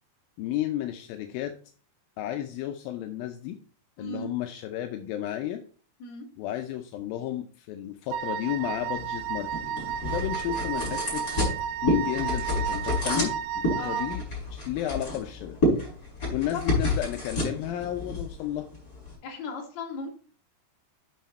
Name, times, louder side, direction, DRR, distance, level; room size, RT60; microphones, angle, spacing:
voice 1, 0.4-1.6 2.2-3.6 4.0-5.6 6.4-11.2 11.5-14.2 14.5-15.6 16.3-18.7, left 12 dB, 80° left, 6 dB, 2.1 m, -32 dB
voice 2, 4.0-4.3 6.0-6.3 13.7-14.0 16.5-16.8 19.2-20.1, left 3 dB, 50° left, 1 dB, 2.7 m, -36 dB
Wind instrument woodwind instrument, 8.1-14.2, right 9 dB, 80° right, 2.4 m, -32 dB
sound 1, 9.0-19.1, left 1 dB, 20° left, 5.1 m, -30 dB
9.3 x 5.9 x 4.2 m, 0.41 s
omnidirectional pair, 4.9 m